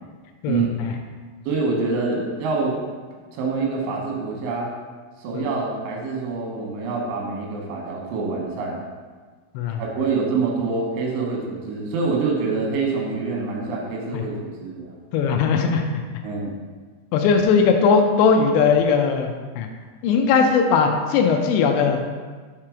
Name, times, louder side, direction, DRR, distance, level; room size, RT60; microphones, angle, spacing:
voice 1, 0.4-0.9 5.3-5.4 9.5-9.8 14.1-14.2 15.1-16.0 17.1-19.3 19.6-19.7 20.0-22.0, left 5 dB, 80° left, 4 dB, 2.6 m, -19 dB
voice 2, 1.5-2.8 3.3-4.7 5.2-8.8 9.8-14.9 16.2-16.5, right 4 dB, 90° right, -1 dB, 3.5 m, -26 dB
7.4 x 3.0 x 4.9 m, 1.4 s
omnidirectional pair, 5.2 m